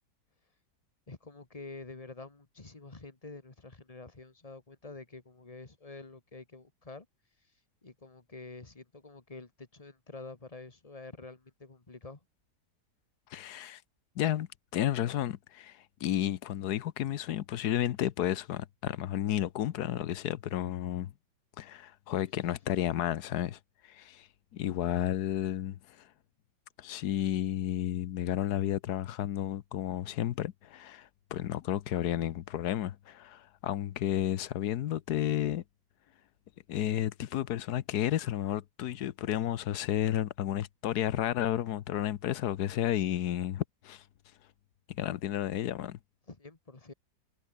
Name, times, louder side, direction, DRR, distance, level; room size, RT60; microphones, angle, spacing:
voice 1, 1.1-7.1 7.8-12.2 46.3-46.9, left 3 dB, 20° left, 2.0 m, -48 dB
voice 2, 13.3-13.8 14.2-21.1 21.6-24.3 24.5-26.1 26.8-35.6 36.7-44.0 44.9-46.0, left 12 dB, 75° left, 1.3 m, -32 dB
omnidirectional pair, 1.8 m